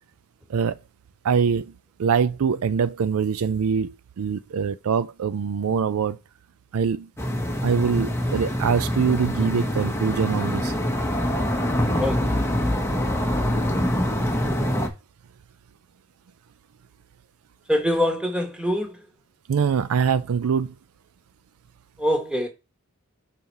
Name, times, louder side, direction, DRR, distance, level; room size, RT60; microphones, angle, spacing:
voice 1, 1.2-1.7 2.0-6.2 6.7-7.1 7.6-10.7 19.5-20.7, right 6 dB, 75° right, 0.4 m, -23 dB
sound 1, 7.2-14.9, equal, 10° left, 1.0 m, -25 dB
voice 2, 12.0-12.3 17.7-19.0 22.0-22.5, equal, 5° right, 1.3 m, -24 dB
5.5 x 4.1 x 4.5 m
head